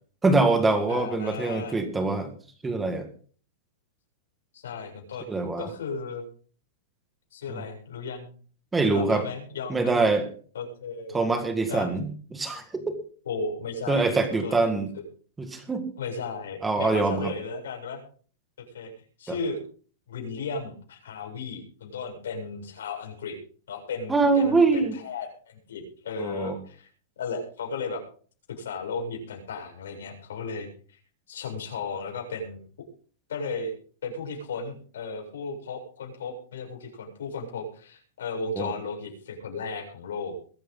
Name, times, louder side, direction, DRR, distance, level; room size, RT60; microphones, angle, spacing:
voice 1, 0.2-2.3 2.6-3.1 5.3-5.7 8.7-9.3 9.7-10.3 11.1-13.0 13.9-14.9 15.4-15.8 16.6-17.3 19.3-19.4 24.1-24.9 26.2-26.6 38.6-38.7, right 3 dB, 5° right, 7 dB, 1.8 m, -24 dB
voice 2, 0.9-1.8 4.5-6.2 7.3-8.3 8.9-10.0 10.5-11.2 11.7-11.9 13.2-14.6 16.0-18.0 18.7-18.9 19.2-19.6 20.1-23.4 23.7-26.9 27.2-28.0 28.6-31.0 31.3-32.6 33.3-33.7 34.0-40.3, left 4 dB, 90° left, 1 dB, 7.6 m, -35 dB
22.5 x 9.8 x 3.9 m, 0.43 s
supercardioid pair, 175°, 0 cm